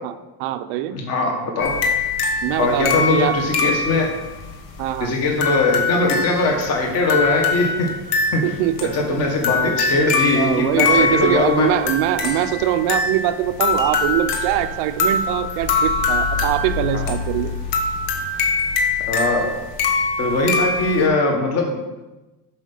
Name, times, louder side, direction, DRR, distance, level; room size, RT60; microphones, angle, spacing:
voice 1, 0.4-1.0 2.4-3.4 4.8-5.2 8.4-8.9 10.3-17.5, right 12 dB, 55° right, 11 dB, 0.5 m, -22 dB
voice 2, 0.9-1.7 2.6-4.1 5.0-7.9 8.3-8.4 8.8-11.7 16.9-17.0 19.1-19.5 20.2-21.8, left 2 dB, 30° left, 1 dB, 1.3 m, -20 dB
Music Box, 1.6-21.1, left 4 dB, 60° left, 1.3 m, -23 dB
7.5 x 5.7 x 5.4 m, 1.1 s
cardioid pair, 180°, 47 cm